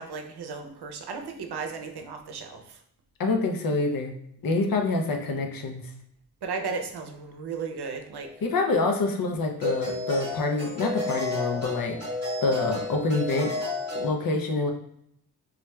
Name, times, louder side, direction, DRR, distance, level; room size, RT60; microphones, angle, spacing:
voice 1, 0.0-2.8 6.4-8.3, right 5 dB, 85° right, 4 dB, 0.6 m, -35 dB
voice 2, 3.2-4.2 4.4-5.8 8.4-12.0 12.4-13.5 13.9-14.7, left 3 dB, 65° left, 4 dB, 0.6 m, -26 dB
sound 1, 8.2-8.4 9.6-14.1, left 2 dB, 30° right, 1.4 m, -32 dB
4.1 x 2.3 x 2.3 m, 0.72 s
cardioid pair, 55°, 38 cm